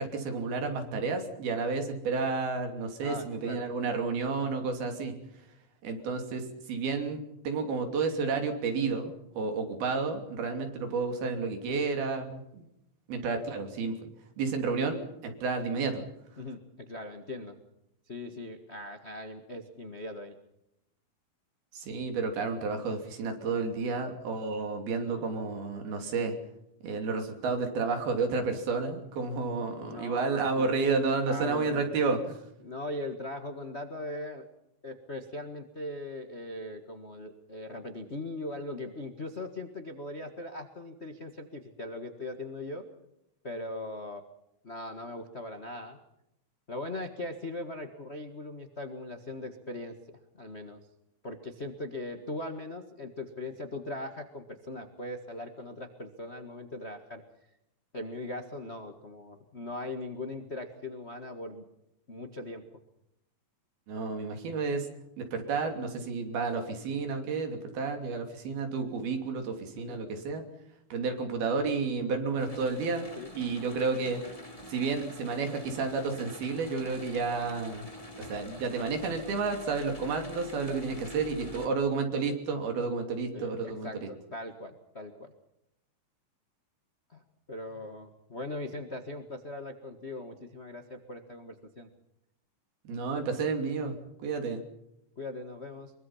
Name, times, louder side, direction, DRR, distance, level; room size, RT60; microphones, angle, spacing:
voice 1, 0.0-5.2 5.8-12.6 13.1-14.1 14.4-16.0 21.7-26.3 26.8-32.4 63.9-64.9 65.2-70.4 70.9-73.1 73.3-74.2 74.7-77.9 78.2-84.1 92.8-94.0 94.2-94.6, right 4 dB, 75° right, 5 dB, 4.8 m, -31 dB
voice 2, 3.0-3.7 16.4-17.6 18.1-20.4 25.0-25.3 29.7-30.8 31.2-31.9 32.6-34.4 34.8-42.8 43.4-44.2 44.6-46.0 46.7-50.8 51.2-57.2 57.9-61.6 62.1-62.8 69.7-70.0 73.1-73.3 83.3-85.3 87.1-87.2 87.5-91.9 95.2-95.9, left 1 dB, 75° left, 5 dB, 0.6 m, -40 dB
sound 1, 72.4-81.7, equal, 10° left, 2.2 m, -46 dB
24.0 x 23.5 x 5.7 m, 0.83 s
omnidirectional pair, 4.4 m